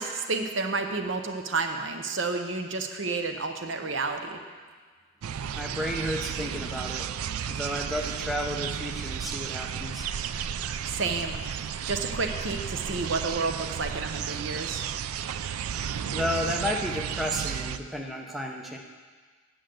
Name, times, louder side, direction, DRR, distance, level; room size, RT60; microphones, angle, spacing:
voice 1, 0.0-4.4 10.9-14.8, right 3 dB, 60° right, 5 dB, 0.8 m, -31 dB
sound 1, 5.2-17.8, right 8 dB, 90° right, 0.4 m, -33 dB
voice 2, 5.6-7.1 7.5-10.1 16.1-18.8, left 1 dB, ahead, 0 dB, 0.6 m, -32 dB
8.5 x 6.4 x 7.7 m, 1.5 s
head